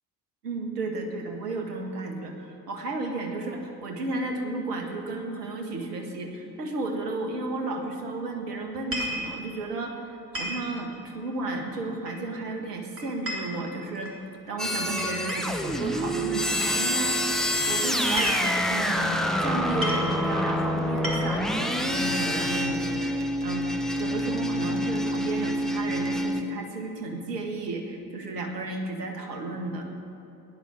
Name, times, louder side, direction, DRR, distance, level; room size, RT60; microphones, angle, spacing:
voice 1, 0.4-14.1 14.5-18.4 18.7-23.7 24.0-29.9, right 2 dB, 75° right, 3 dB, 1.8 m, -33 dB
sound 1, 8.7-9.3 10.3-10.7 12.1-12.4 13.0-14.2 15.0-15.6 16.6-16.8 18.0-18.7 19.5-19.6 19.8-20.1 20.8-21.5, equal, 25° right, 3.7 m, -33 dB
sound 2, 14.6-26.4, equal, ahead, 1.2 m, -27 dB
17.0 x 11.0 x 6.1 m, 3.0 s
figure-of-eight pair, 55°, 48 cm